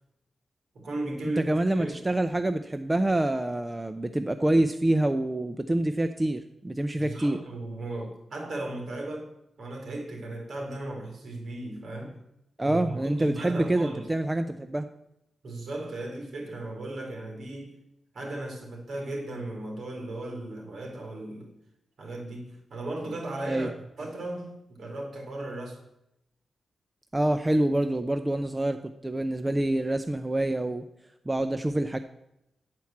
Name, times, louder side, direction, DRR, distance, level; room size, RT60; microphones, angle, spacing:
voice 1, 0.7-2.0 7.0-9.3 9.6-12.2 12.6-14.1 15.4-17.8 18.1-21.5 22.0-23.7 24.0-25.8, right 2 dB, 60° right, 2.2 m, -36 dB
voice 2, 1.5-7.4 12.6-14.9 23.5-23.7 27.1-28.8 29.0-30.8 31.3-32.0, right 1 dB, 15° right, 0.3 m, -26 dB
8.4 x 4.5 x 7.1 m
wide cardioid pair, 165°, 0 cm